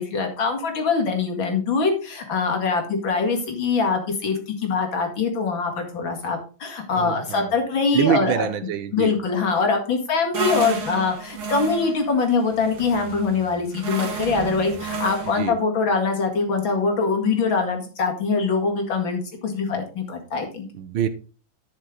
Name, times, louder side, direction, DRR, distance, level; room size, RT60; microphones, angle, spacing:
voice 1, 0.0-8.5 8.9-20.7, left 4 dB, 75° left, 2.9 m, -23 dB
voice 2, 6.9-7.5 7.9-9.1 15.4-15.6 20.7-21.1, right 9 dB, 85° right, 1.7 m, -25 dB
sound 1, 10.3-15.5, right 4 dB, 55° right, 2.3 m, -31 dB
10.5 x 6.5 x 3.8 m
omnidirectional pair, 2.1 m